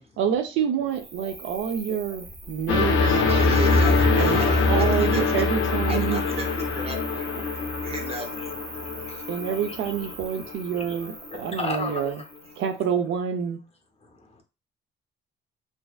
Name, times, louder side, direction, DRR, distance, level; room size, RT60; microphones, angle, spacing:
voice 1, 0.2-3.2 4.2-6.2 9.3-12.2 12.6-13.6, right 8 dB, 85° right, 0.5 m, -27 dB
Cricket, 0.9-12.8, right 3 dB, 60° right, 0.8 m, -42 dB
sound 1, 2.7-10.5 11.3-11.4, left 3 dB, 75° left, 0.5 m, -23 dB
voice 2, 3.3-5.4 5.9-7.3 7.8-8.4, right 2 dB, 30° right, 0.6 m, -34 dB
voice 3, 8.4-10.1 10.4-12.3 14.0-14.4, left 4 dB, 30° left, 0.6 m, -37 dB
2.6 x 2.2 x 2.3 m
cardioid pair, 90°, 20 cm